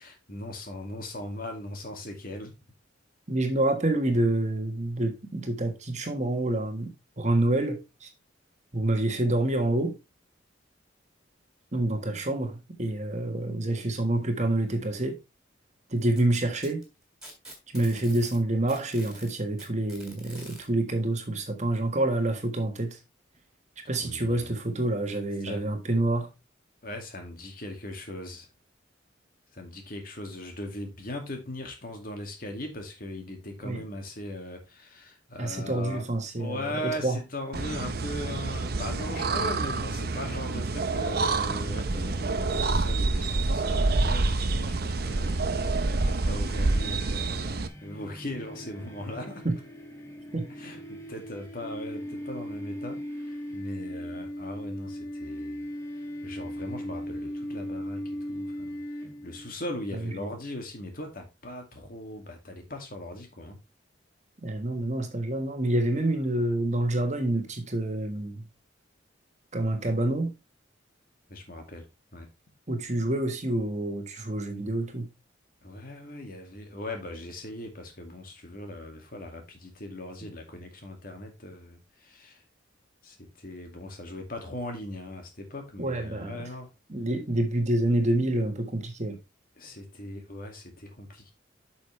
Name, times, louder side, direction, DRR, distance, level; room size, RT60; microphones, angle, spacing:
voice 1, 0.0-2.5 24.0-24.5 25.4-25.6 26.8-28.5 29.5-36.0 36.4-45.7 46.0-49.4 50.6-55.7 56.0-58.8 59.2-63.6 71.3-71.9 72.1-72.3 75.6-82.4 83.0-86.7 89.6-91.3, left 1 dB, 50° left, 2.3 m, -39 dB
voice 2, 3.3-8.1 8.7-9.9 11.7-15.2 15.9-16.8 17.7-23.0 23.9-26.3 33.6-33.8 35.4-37.2 49.4-49.6 50.3-50.5 59.9-60.3 64.4-68.4 69.5-70.3 72.7-75.1 85.8-86.4 86.9-89.2, right 1 dB, 40° right, 1.5 m, -27 dB
Packing tape duct tape, 16.0-18.4 18.7-20.6 21.8-21.9 22.4-22.5 23.3-23.4, right 1 dB, 5° right, 2.9 m, -46 dB
sound 1, 37.5-47.7, right 3 dB, 55° right, 0.8 m, -27 dB
sound 2, 45.1-59.5, equal, 15° left, 1.8 m, -39 dB
8.3 x 6.3 x 3.3 m
head